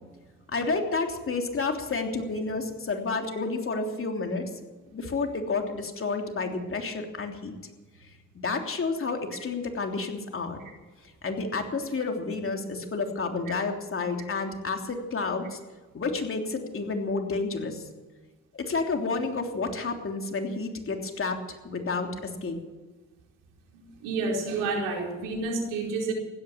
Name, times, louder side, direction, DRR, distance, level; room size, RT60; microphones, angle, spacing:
voice 1, 0.5-4.4 4.9-7.5 8.3-10.6 11.2-15.6 15.9-17.8 18.5-22.6, left 4 dB, 45° left, 3 dB, 3.3 m, -30 dB
voice 2, 23.7-26.1, right 3 dB, 85° right, 0 dB, 4.5 m, -30 dB
16.0 x 12.0 x 7.4 m, 1.3 s
supercardioid pair, 60°, 31 cm